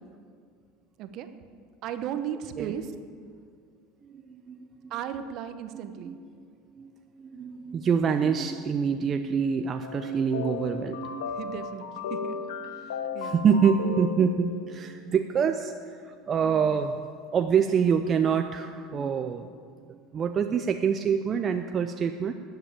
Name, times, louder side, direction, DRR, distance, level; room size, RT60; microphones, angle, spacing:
voice 1, 1.8-2.9 4.9-6.2 11.4-12.4 12.6-13.4, right 9 dB, 55° right, 10 dB, 1.0 m, -36 dB
voice 2, 4.0-4.9 6.0-6.4 6.8-11.4 12.8-17.0 17.3-19.5 19.9-22.3, right 7 dB, 40° right, 7 dB, 0.6 m, -26 dB
sound 1, 9.8-14.8, left 6 dB, 80° left, 0.9 m, -35 dB
12.0 x 8.0 x 8.8 m, 2.1 s
hypercardioid pair, 80°, 0 cm